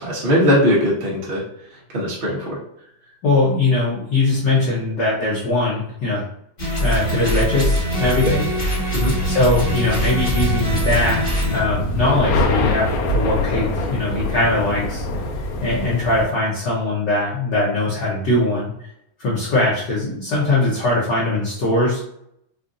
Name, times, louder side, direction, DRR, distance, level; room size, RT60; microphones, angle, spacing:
voice 1, 0.0-1.4 1.7-2.6 8.2-8.3 8.9-9.1, equal, 85° right, -5 dB, 0.5 m, -20 dB
voice 2, 3.2-6.2 6.8-8.5 9.2-15.0 15.6-18.9 19.2-22.0, left 2 dB, 65° left, -7 dB, 1.1 m, -21 dB
sound 1, 6.6-11.6, equal, 30° left, 1.1 m, -22 dB
sound 2, 7.9-16.2, left 2 dB, 80° left, 1.8 m, -24 dB
5.0 x 2.5 x 2.6 m, 0.72 s
omnidirectional pair, 3.3 m